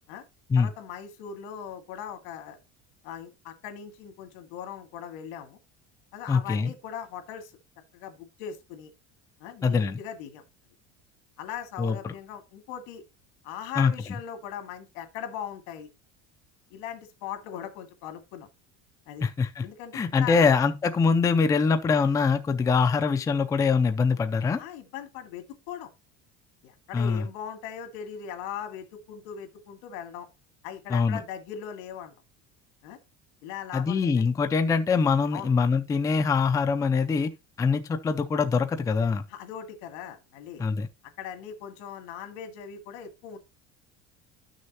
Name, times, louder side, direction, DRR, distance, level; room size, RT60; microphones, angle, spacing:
voice 1, 0.6-2.6 3.0-5.6 6.1-7.5 7.9-8.9 9.4-10.4 11.4-13.0 13.4-15.9 16.7-18.5 19.1-19.2 19.6-20.5 24.6-25.9 26.6-30.3 30.6-32.1 32.8-33.0 33.4-34.3 35.3-35.5 39.3-40.6 41.2-43.4, left 9 dB, 85° left, 2.0 m, -39 dB
voice 2, 6.3-6.7 9.6-10.0 11.8-12.1 13.8-13.9 19.2-19.6 19.9-24.6 26.9-27.3 30.9-31.2 33.7-37.3 37.6-39.2 40.6-40.9, left 5 dB, 10° left, 0.4 m, -23 dB
12.0 x 6.4 x 2.8 m
cardioid pair, 165°, 32 cm